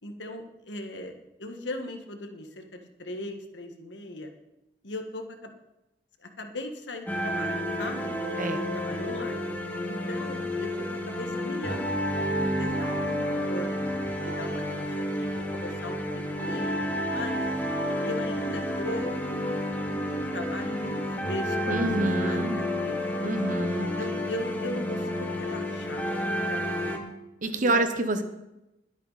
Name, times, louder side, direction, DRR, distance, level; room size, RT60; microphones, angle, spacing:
voice 1, 0.0-1.1 1.4-4.3 4.8-5.5 6.2-8.1 8.5-9.5 9.9-13.9 14.2-17.4 18.0-23.0 24.0-26.1 26.5-27.0 27.6-27.8 28.1-28.2, left 1 dB, 85° left, 5 dB, 1.7 m, -38 dB
sound 1, 7.1-27.0, equal, 10° left, 1.5 m, -30 dB
voice 2, 21.7-22.6 23.2-23.9 27.4-28.2, right 2 dB, 45° right, 9 dB, 1.1 m, -27 dB
21.0 x 8.3 x 4.2 m, 0.93 s
head